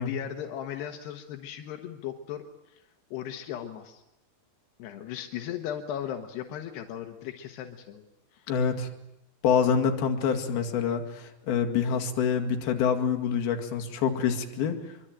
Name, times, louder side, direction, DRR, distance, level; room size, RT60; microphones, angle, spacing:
voice 1, 0.0-2.4 2.7-2.8 3.1-4.0 4.8-8.4, left 10 dB, 85° left, 5 dB, 3.5 m, -37 dB
voice 2, 8.5-8.9 9.4-14.8, left 7 dB, 70° left, 3 dB, 4.0 m, -26 dB
25.5 x 24.0 x 9.0 m, 0.87 s
omnidirectional pair, 4.6 m